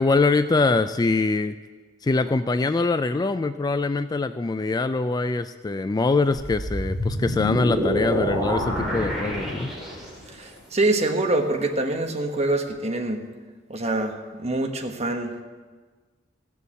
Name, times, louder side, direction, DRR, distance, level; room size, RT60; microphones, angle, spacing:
voice 1, 0.0-1.6 2.0-9.7, left 3 dB, 20° left, 11 dB, 0.3 m, -23 dB
sound 1, 6.3-10.3, equal, ahead, 3.2 m, -27 dB
voice 2, 10.4-13.2 13.7-15.4, right 2 dB, 35° right, 4 dB, 1.3 m, -25 dB
15.5 x 7.0 x 8.2 m, 1.4 s
head